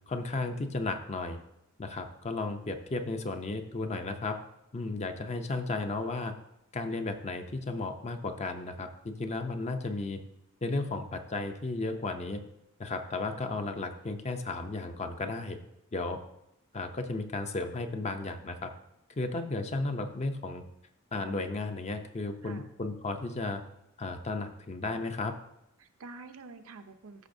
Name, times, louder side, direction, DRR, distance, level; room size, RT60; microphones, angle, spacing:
voice 1, 0.1-1.4 1.8-4.4 4.7-6.3 6.7-10.2 10.6-12.4 12.8-15.6 15.9-16.2 16.7-18.7 19.2-20.6 21.1-23.6 24.0-25.4, left 3 dB, 30° left, 7 dB, 0.6 m, -34 dB
voice 2, 25.8-27.3, right 3 dB, 70° right, 8 dB, 0.6 m, -48 dB
13.0 x 6.0 x 2.7 m, 0.82 s
head